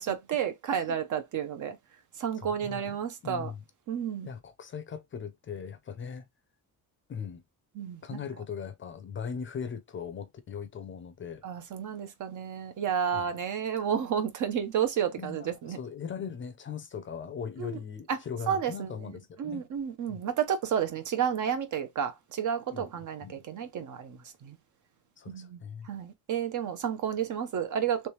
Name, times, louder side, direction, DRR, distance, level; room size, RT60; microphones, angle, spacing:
voice 1, 0.0-1.8 2.2-3.5 3.9-4.3 7.8-8.2 11.4-15.8 17.6-17.8 18.1-18.2 18.5-18.9 19.4-24.5 25.3-25.6 25.9-28.1, right 8 dB, 50° right, 0.7 m, -31 dB
voice 2, 2.4-3.0 3.2-3.6 4.2-6.3 7.1-7.4 8.0-11.4 13.1-13.3 15.2-19.7 20.1-20.2 22.7-22.9 23.2-23.4 25.2-25.9, left 6 dB, 30° left, 0.5 m, -39 dB
3.3 x 3.1 x 3.0 m
cardioid pair, 175°, 38 cm